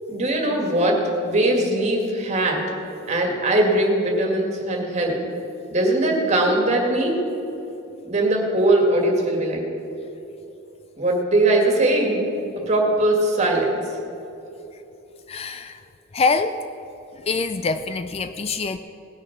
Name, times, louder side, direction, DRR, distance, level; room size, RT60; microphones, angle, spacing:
voice 1, 0.1-2.6 3.1-5.2 5.7-7.2 8.0-9.6 11.0-12.2 12.7-13.8, right 1 dB, 35° right, 0 dB, 2.1 m, -20 dB
voice 2, 15.3-15.8 16.1-16.6 17.1-18.8, left 4 dB, 30° left, 10 dB, 0.3 m, -24 dB
18.5 x 6.4 x 6.0 m, 2.9 s
head